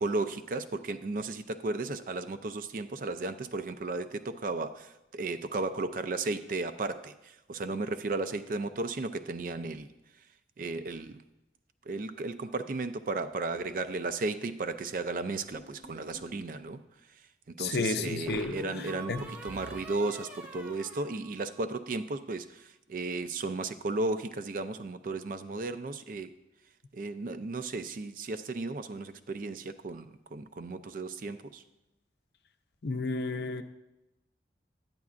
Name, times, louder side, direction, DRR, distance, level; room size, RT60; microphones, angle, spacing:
voice 1, 0.0-9.9 10.6-11.2 11.9-16.8 17.5-26.3 26.9-31.6, right 3 dB, 50° right, 12 dB, 0.4 m, -34 dB
sound 1, 15.5-16.4 18.3-21.9, right 1 dB, 10° right, 0.7 m, -46 dB
voice 2, 17.6-18.6 19.1-19.2 32.8-33.6, left 3 dB, 65° left, 8 dB, 0.5 m, -31 dB
10.5 x 9.4 x 2.5 m, 0.95 s
head